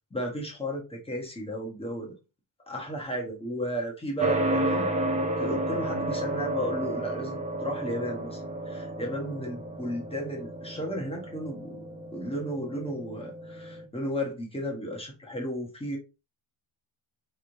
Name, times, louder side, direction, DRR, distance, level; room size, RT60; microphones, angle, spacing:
voice 1, 0.1-2.1 2.7-11.8 12.1-16.0, equal, 10° left, 0.9 m, -34 dB
sound 1, 4.2-13.8, right 1 dB, 15° right, 0.5 m, -32 dB
4.1 x 3.2 x 2.6 m
cardioid pair, 155°, 50 cm